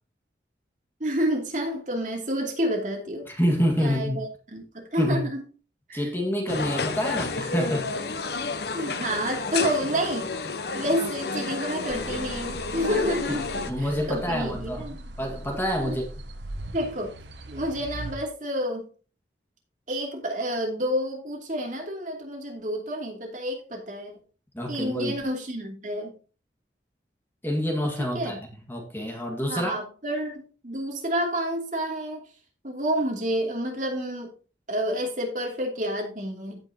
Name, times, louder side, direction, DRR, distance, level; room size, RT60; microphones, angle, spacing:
voice 1, 1.0-3.3 3.8-5.4 5.9-6.1 8.7-10.3 10.7-13.5 13.8-15.0 15.8-16.0 16.7-17.1 17.5-18.8 19.9-24.1 24.7-26.1 28.0-28.4 29.5-32.3 32.6-34.3 34.7-36.6, equal, 45° right, 2.7 m, -29 dB
voice 2, 3.3-4.2 5.0-5.2 5.9-7.9 13.7-14.8 15.2-16.0 24.5-25.2 27.4-29.7, equal, 10° left, 1.8 m, -27 dB
sound 1, 6.5-13.7, left 4 dB, 70° left, 0.9 m, -31 dB
sound 2, 11.9-18.2, right 1 dB, 85° right, 1.0 m, -39 dB
16.0 x 6.0 x 2.9 m
head